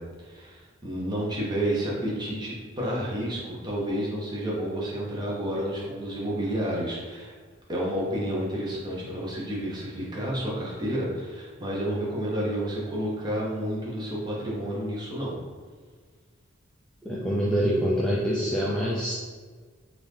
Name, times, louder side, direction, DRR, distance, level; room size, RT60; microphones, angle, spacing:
voice 1, 0.0-7.3 7.7-15.4, equal, 20° right, -5 dB, 0.9 m, -30 dB
voice 2, 17.0-19.1, equal, 5° left, -7 dB, 0.3 m, -25 dB
3.8 x 2.6 x 3.2 m, 1.5 s
head